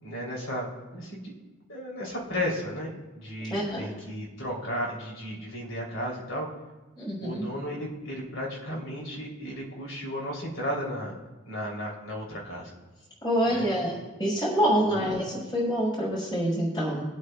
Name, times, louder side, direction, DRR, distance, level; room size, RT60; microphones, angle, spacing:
voice 1, 0.0-0.7 0.9-1.3 1.7-6.5 7.2-11.1 11.5-12.7 13.5-13.7 14.8-15.1, equal, 85° left, -3 dB, 3.0 m, -34 dB
voice 2, 3.5-3.9 7.0-7.4 13.2-13.9 14.2-17.0, equal, 20° left, -7 dB, 4.0 m, -26 dB
24.0 x 8.1 x 2.2 m, 1.2 s
head